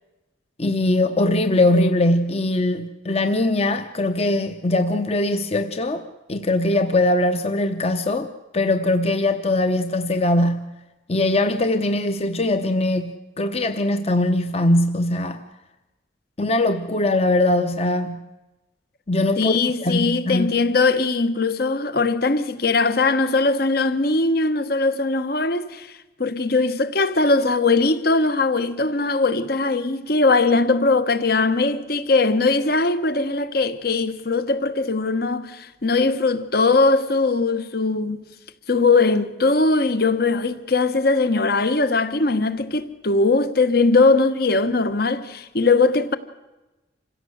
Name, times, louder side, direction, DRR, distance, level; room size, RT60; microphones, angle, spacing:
voice 1, 0.6-6.0 6.3-10.7 11.1-15.4 16.4-18.3 19.1-19.5 19.8-20.6, left 2 dB, 35° left, 0.9 m, -21 dB
voice 2, 19.4-25.9 26.2-38.2 38.7-46.2, left 3 dB, 55° left, 1.2 m, -20 dB
26.5 x 16.5 x 8.0 m
head